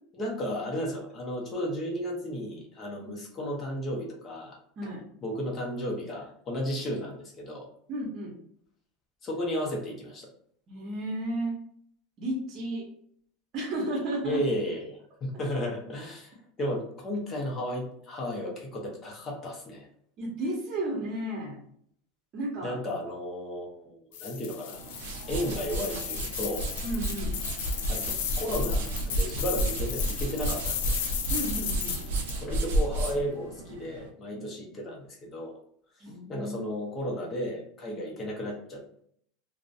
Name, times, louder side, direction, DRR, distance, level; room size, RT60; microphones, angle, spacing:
voice 1, 0.1-4.6 5.2-7.7 9.2-10.3 14.2-19.9 22.6-24.8 25.3-26.7 27.9-30.9 32.4-35.6 36.3-39.0, equal, 25° left, -1 dB, 0.6 m, -34 dB
voice 2, 7.9-8.3 10.7-11.6 12.2-12.9 13.5-14.4 20.2-21.6 22.3-22.8 26.8-27.4 31.3-32.0 34.3-34.4 36.0-36.7 37.9-38.0, right 1 dB, 35° right, -2 dB, 0.7 m, -33 dB
sound 1, 24.1-32.4, left 9 dB, 75° left, 0.3 m, -35 dB
sound 2, 24.7-34.1, right 1 dB, 90° right, 0.5 m, -31 dB
2.4 x 2.0 x 2.5 m, 0.65 s
supercardioid pair, 145°, 0 cm